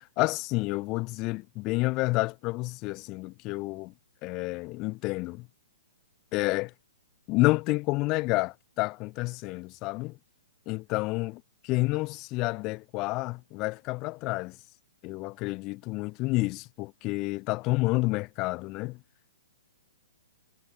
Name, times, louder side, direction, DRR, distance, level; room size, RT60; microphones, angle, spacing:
voice 1, 0.2-3.9 4.2-5.5 6.3-6.7 7.3-10.2 10.7-11.4 11.7-14.6 15.0-19.0, left 23 dB, 25° left, 7.6 m, -29 dB
hypercardioid pair, 160°, 0 cm